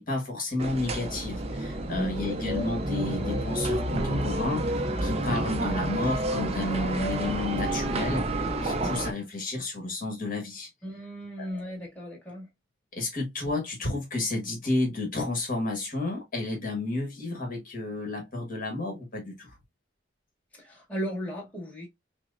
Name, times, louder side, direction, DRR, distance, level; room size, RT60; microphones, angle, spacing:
voice 1, 0.0-10.7 11.4-11.6 12.9-19.5, left 2 dB, 45° left, 1.3 m, -31 dB
sound 1, 0.6-9.1, right 1 dB, 30° right, 0.5 m, -29 dB
voice 2, 1.8-2.4 10.8-12.5 20.5-21.9, equal, 10° left, 1.5 m, -36 dB
5.9 x 2.0 x 2.5 m
head